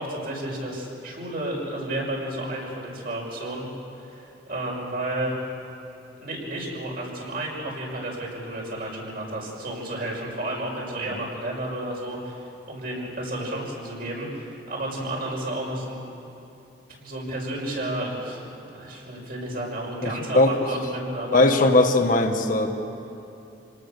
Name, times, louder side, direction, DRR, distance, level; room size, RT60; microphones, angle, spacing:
voice 1, 0.0-3.7 3.9-5.3 6.2-16.0 17.0-18.4 18.7-21.5, right 1 dB, 55° right, -2 dB, 5.9 m, -32 dB
voice 2, 20.0-20.5 21.3-22.7, left 2 dB, 50° left, 5 dB, 1.4 m, -19 dB
28.0 x 19.0 x 6.8 m, 2.9 s
head